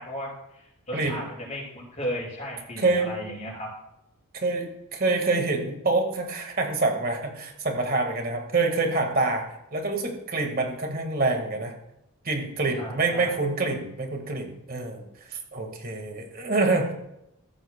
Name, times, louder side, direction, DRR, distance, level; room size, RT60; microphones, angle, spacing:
voice 1, 0.0-3.7 12.8-13.3, equal, 35° left, -4 dB, 4.9 m, -35 dB
voice 2, 2.8-3.1 4.3-9.4 9.7-11.7 12.2-16.9, right 3 dB, 40° right, 4 dB, 1.7 m, -26 dB
15.0 x 13.0 x 2.2 m, 0.83 s
head